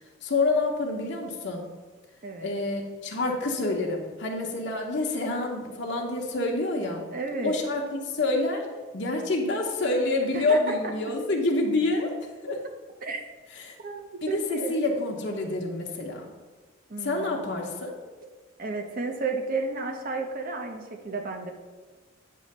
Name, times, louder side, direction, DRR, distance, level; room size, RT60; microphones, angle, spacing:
voice 1, 0.2-1.6 2.4-7.0 7.4-8.6 8.9-12.1 12.4-12.6 13.5-13.7 14.2-16.3 17.0-17.9, left 2 dB, 55° left, 0 dB, 0.9 m, -27 dB
voice 2, 7.1-7.5 10.3-10.9 12.5-12.6 13.0-13.2 13.8-14.8 16.9-17.5 18.2-18.3 18.6-21.5, right 3 dB, 45° right, 4 dB, 0.8 m, -32 dB
8.5 x 3.2 x 6.5 m, 1.3 s
head